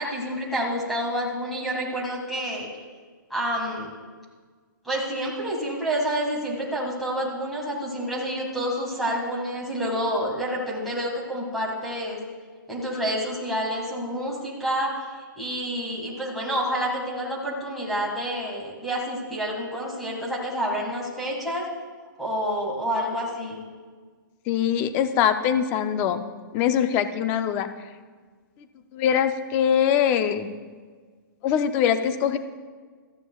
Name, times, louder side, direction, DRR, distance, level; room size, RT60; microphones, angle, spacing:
voice 1, 0.0-2.7 3.3-3.9 4.8-12.2 12.7-21.6 22.2-23.6, equal, ahead, -5 dB, 1.8 m, -28 dB
voice 2, 24.5-26.2 26.5-27.7 28.9-30.5 31.4-32.4, left 9 dB, 15° left, 10 dB, 0.4 m, -22 dB
18.0 x 13.5 x 2.3 m, 1.5 s
hypercardioid pair, 170°, 11 cm